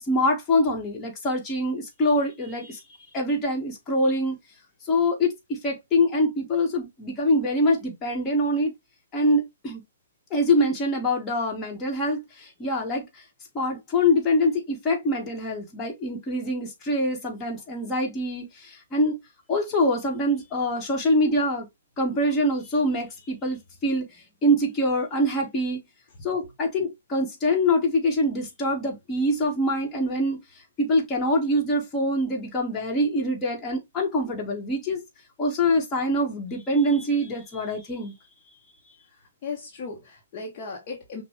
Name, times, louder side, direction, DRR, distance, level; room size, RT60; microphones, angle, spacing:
voice 1, 0.1-2.8 3.1-4.4 4.9-8.7 9.1-9.8 10.3-13.0 13.5-19.2 19.5-21.7 22.0-24.0 24.4-25.8 26.2-30.4 30.8-35.0 35.4-38.1, left 1 dB, 20° left, 1.5 m, -24 dB
voice 2, 39.1-41.2, left 4 dB, 35° left, 1.1 m, -37 dB
5.9 x 2.4 x 3.1 m
figure-of-eight pair, 120°, 0 cm